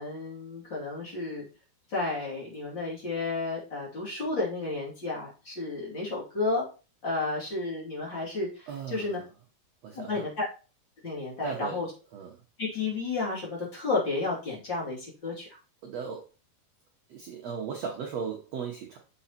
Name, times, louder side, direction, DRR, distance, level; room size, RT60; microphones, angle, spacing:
voice 1, 0.0-1.4 1.9-6.6 7.0-9.2 9.9-10.5 11.0-11.9 12.6-15.6, left 3 dB, 30° left, -5 dB, 3.3 m, -32 dB
voice 2, 8.7-9.2 9.8-10.2 11.4-11.8 12.1-12.4 15.8-16.3 17.1-19.0, right 6 dB, 80° right, 0 dB, 1.4 m, -36 dB
7.0 x 5.5 x 4.2 m, 0.33 s
omnidirectional pair, 4.6 m